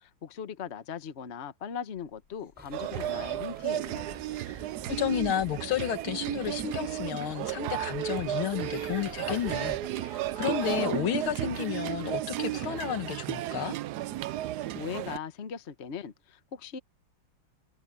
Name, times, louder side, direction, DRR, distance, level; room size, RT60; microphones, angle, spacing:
voice 1, 0.0-4.2 14.7-16.8, left 7 dB, 40° left, 1.1 m, -39 dB
sound 1, 1.9-4.5 5.0-5.6 6.2-7.2 7.6-12.8, left 7 dB, 55° left, 1.8 m, -48 dB
sound 2, 2.6-9.9, equal, 5° right, 5.9 m, -51 dB
sound 3, 2.7-15.2, right 14 dB, 75° right, 0.9 m, -34 dB
voice 2, 4.9-13.8, left 10 dB, 75° left, 2.0 m, -32 dB
omnidirectional pair, 2.3 m